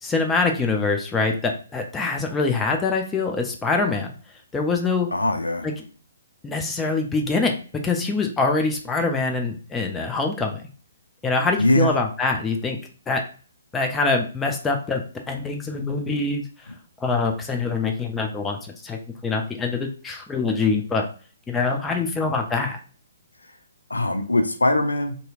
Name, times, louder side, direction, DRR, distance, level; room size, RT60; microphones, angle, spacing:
voice 1, 0.0-4.1 4.5-5.1 5.6-5.7 6.4-7.5 7.8-10.6 11.2-12.8 13.1-13.2 13.7-16.5 17.0-21.1 21.5-22.8, left 3 dB, 10° left, 3 dB, 0.4 m, -24 dB
voice 2, 5.1-5.7 11.6-12.0 23.9-25.2, left 1 dB, 75° left, 6 dB, 0.4 m, -21 dB
2.8 x 2.6 x 2.3 m, 0.40 s
figure-of-eight pair, 130°, 0 cm